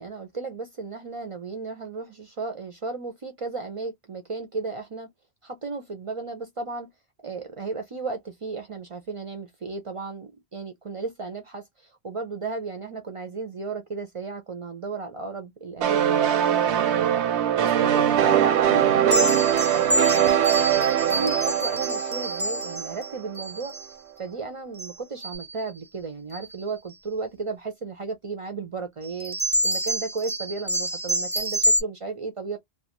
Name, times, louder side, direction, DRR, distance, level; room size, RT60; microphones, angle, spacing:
voice 1, 0.0-5.1 5.4-6.9 7.2-19.3 19.7-23.7 24.2-29.4 29.6-32.6, right 4 dB, 50° right, 0.4 m, -34 dB
sound 1, 15.8-23.3, right 10 dB, 90° right, 0.9 m, -22 dB
sound 2, 19.1-23.9 24.7-24.9 25.2-25.6 26.3-26.5 29.0-31.8, equal, 15° left, 0.5 m, -27 dB
2.3 x 2.2 x 2.8 m
omnidirectional pair, 1.1 m